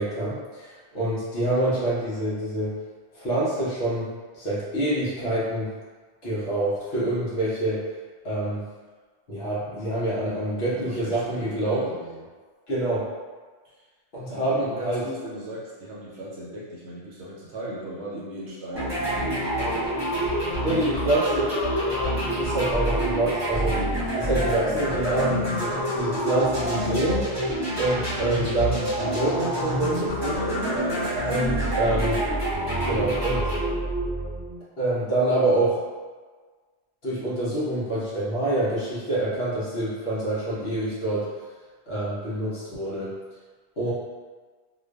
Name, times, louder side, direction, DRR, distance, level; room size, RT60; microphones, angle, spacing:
voice 1, 0.0-2.7 3.1-5.7 6.2-7.8 8.2-8.6 9.3-11.8 12.7-13.0 14.1-15.0 20.6-21.5 22.4-23.8 24.1-27.2 27.8-30.6 31.3-32.2 32.8-33.5 34.8-35.8 37.0-41.3 41.9-43.1 43.8-43.9, right 1 dB, 60° left, -8 dB, 0.9 m, -26 dB
voice 2, 10.7-12.3 13.6-13.7 14.3-20.6 30.2-31.8, right 1 dB, 65° right, -6 dB, 0.8 m, -38 dB
sound 1, 18.7-34.6, right 1 dB, 25° right, 1.0 m, -27 dB
2.4 x 2.2 x 2.2 m, 1.4 s
omnidirectional pair, 1.3 m